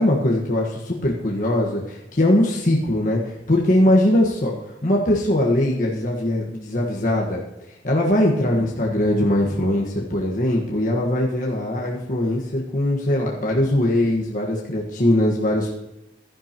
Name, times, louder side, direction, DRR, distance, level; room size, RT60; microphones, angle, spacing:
voice 1, 0.0-4.5 4.8-7.4 7.8-15.7, left 1 dB, 50° left, -3 dB, 1.5 m, -21 dB
15.5 x 12.0 x 3.0 m, 0.93 s
head